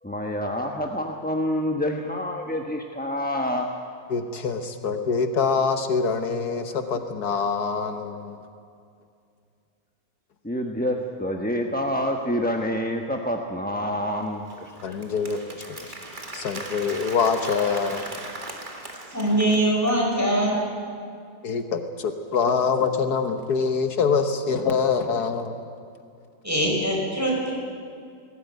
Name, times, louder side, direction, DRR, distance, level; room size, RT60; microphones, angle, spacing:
voice 1, 0.0-3.7 10.4-14.7, equal, 5° left, 2 dB, 0.9 m, -27 dB
voice 2, 4.1-8.4 14.8-15.6 16.3-18.0 21.4-25.6, left 5 dB, 75° left, 7 dB, 1.7 m, -25 dB
Applause, 14.2-20.0, right 2 dB, 30° right, 2.3 m, -39 dB
voice 3, 19.1-20.6 26.4-27.5, right 1 dB, 10° right, -2 dB, 5.3 m, -22 dB
20.0 x 17.0 x 9.3 m, 2.4 s
omnidirectional pair, 1.7 m